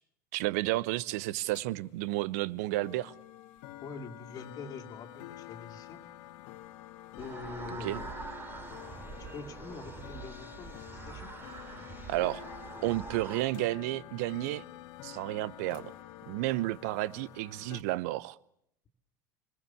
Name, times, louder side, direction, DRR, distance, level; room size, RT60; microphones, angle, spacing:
voice 1, 0.3-3.1 7.7-8.0 12.1-12.4 12.8-14.6 15.0-15.9 16.3-18.4, right 17 dB, 60° right, 19 dB, 0.9 m, -32 dB
sound 1, 1.5-17.8, left 14 dB, 55° left, 1.5 m, -48 dB
voice 2, 3.8-6.0 7.2-8.1 9.3-11.3, left 5 dB, 40° left, 2 dB, 2.4 m, -45 dB
sound 2, 7.2-13.4, right 4 dB, 20° right, 3.0 m, -44 dB
27.5 x 21.0 x 7.1 m, 0.74 s
figure-of-eight pair, 75°, 10 cm